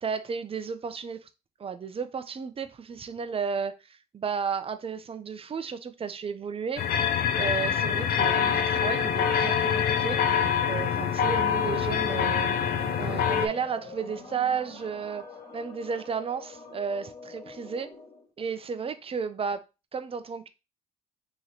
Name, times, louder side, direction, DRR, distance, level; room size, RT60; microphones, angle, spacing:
voice 1, 0.0-1.3 1.6-6.8 7.4-12.5 13.0-15.3 15.5-17.9 18.4-19.6 19.9-20.5, right 6 dB, 35° right, 0.6 m, -33 dB
sound 1, 6.8-13.5, left 7 dB, 60° left, 0.6 m, -25 dB
sound 2, 11.8-18.3, left 3 dB, 35° left, 1.8 m, -45 dB
3.0 x 2.9 x 4.0 m
supercardioid pair, 65°, 18 cm